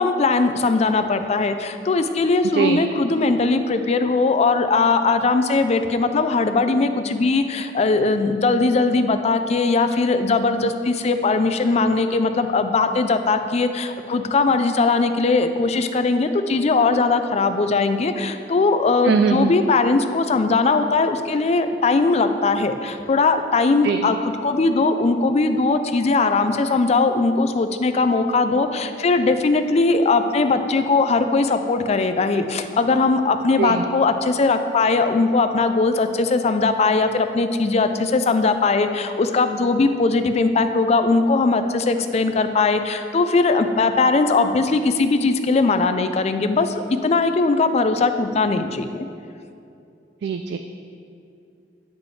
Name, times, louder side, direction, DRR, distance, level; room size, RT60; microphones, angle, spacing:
voice 1, 0.0-49.1, left 3 dB, 35° left, 8 dB, 0.4 m, -20 dB
voice 2, 19.0-19.5 23.8-24.1 33.6-33.8 50.2-50.6, right 6 dB, 65° right, 7 dB, 0.3 m, -21 dB
9.6 x 6.1 x 3.2 m, 2.6 s
head